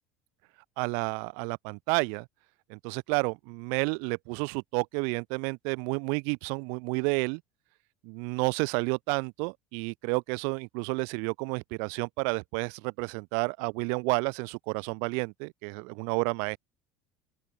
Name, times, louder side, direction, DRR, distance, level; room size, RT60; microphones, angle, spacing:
voice 1, 0.8-2.3 2.7-7.4 8.0-16.6, right 39 dB, 70° right, 0.4 m, -30 dB
open air
cardioid pair, 145°, 4 cm